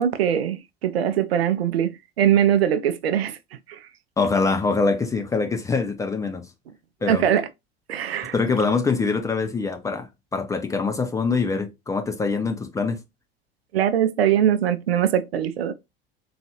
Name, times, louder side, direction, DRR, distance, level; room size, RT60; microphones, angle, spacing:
voice 1, 0.0-3.4 3.7-3.8 7.1-7.5 7.9-8.3 13.7-15.7, right 10 dB, 70° right, 0.5 m, -21 dB
voice 2, 4.2-6.5 7.0-7.2 8.3-13.0, left 4 dB, 10° left, 0.4 m, -24 dB
3.9 x 2.3 x 2.8 m
figure-of-eight pair, 75°, 31 cm